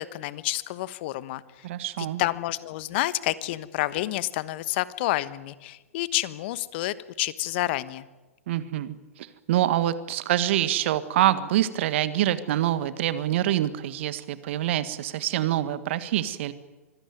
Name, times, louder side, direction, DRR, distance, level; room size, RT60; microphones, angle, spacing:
voice 1, 0.0-1.4 2.2-8.0, left 16 dB, 50° left, 16 dB, 1.2 m, -29 dB
voice 2, 1.6-2.2 8.5-16.5, right 13 dB, 55° right, 13 dB, 1.7 m, -26 dB
25.0 x 16.5 x 9.4 m, 1.2 s
hypercardioid pair, 115°, 8 cm